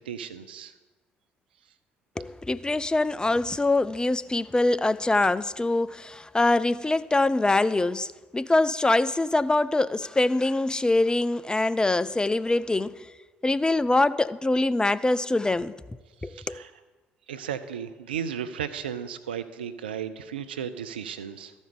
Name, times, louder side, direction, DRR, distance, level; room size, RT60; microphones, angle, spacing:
voice 1, 0.1-0.7 16.2-16.7 17.3-21.5, right 8 dB, 85° right, 0.4 m, -35 dB
voice 2, 2.2-13.1 13.4-15.7 16.2-16.6, left 2 dB, 15° left, 0.4 m, -24 dB
13.5 x 5.3 x 6.7 m
hypercardioid pair, 50°, 5 cm